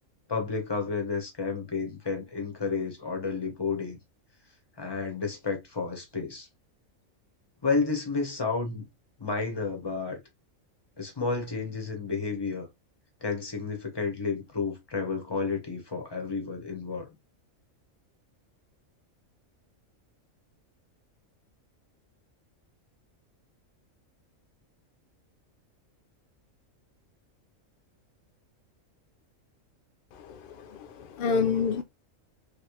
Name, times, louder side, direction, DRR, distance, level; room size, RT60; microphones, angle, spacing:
voice 1, 0.3-4.0 4.8-6.5 7.6-8.8 9.2-10.2 11.0-12.7 13.2-17.1, left 4 dB, 20° left, 1.0 m, -31 dB
voice 2, 30.1-31.8, left 5 dB, 65° left, 0.5 m, -29 dB
3.4 x 2.9 x 2.8 m
omnidirectional pair, 1.4 m